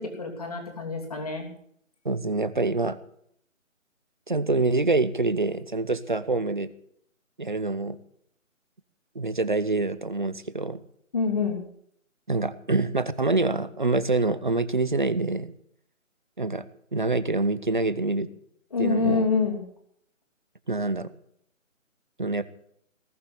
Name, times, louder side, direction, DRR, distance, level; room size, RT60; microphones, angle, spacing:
voice 1, 0.0-1.5 11.1-11.6 18.7-19.6, left 4 dB, 30° left, 2 dB, 2.9 m, -26 dB
voice 2, 2.0-3.0 4.3-6.7 7.4-8.0 9.1-10.8 12.3-15.5 16.4-16.7 16.9-18.3 18.8-19.3 20.7-21.1 22.2-22.4, right 3 dB, 35° right, 15 dB, 0.9 m, -26 dB
19.5 x 7.4 x 9.6 m, 0.70 s
hypercardioid pair, 180°, 40 cm